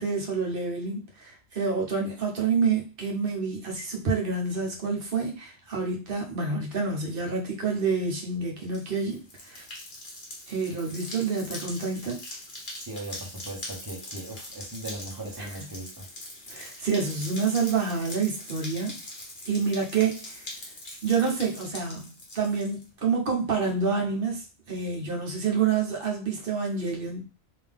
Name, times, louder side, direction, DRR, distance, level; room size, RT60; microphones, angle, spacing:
voice 1, 0.0-9.6 10.5-12.2 15.4-15.5 16.5-19.0 19.5-20.5 21.0-27.3, right 5 dB, 50° right, 0 dB, 1.1 m, -28 dB
sound 1, 8.6-22.8, left 1 dB, 45° left, 1.3 m, -42 dB
voice 2, 12.7-16.1, right 1 dB, 20° right, -1 dB, 1.0 m, -38 dB
3.7 x 2.8 x 3.5 m, 0.33 s
omnidirectional pair, 1.3 m